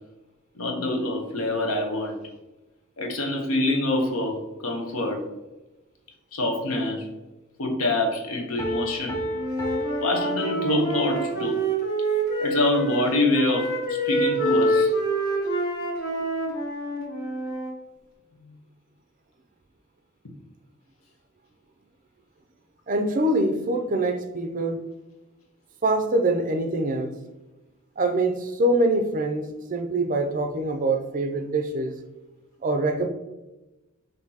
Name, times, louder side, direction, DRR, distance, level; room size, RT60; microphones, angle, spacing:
voice 1, 0.5-2.2 3.0-5.2 6.3-7.1 7.6-9.2 10.0-11.6 12.4-14.9 18.4-18.5, left 2 dB, 75° left, 2 dB, 0.9 m, -25 dB
Piano, 8.6-11.2, equal, 15° left, 0.6 m, -32 dB
Wind instrument woodwind instrument, 9.3-13.0 13.3-17.7, right 1 dB, 45° left, 1.4 m, -26 dB
voice 2, 22.9-24.8 25.8-27.1 28.0-31.9 32.6-33.1, right 2 dB, 40° right, 5 dB, 0.4 m, -24 dB
5.7 x 2.6 x 2.8 m, 1.0 s
head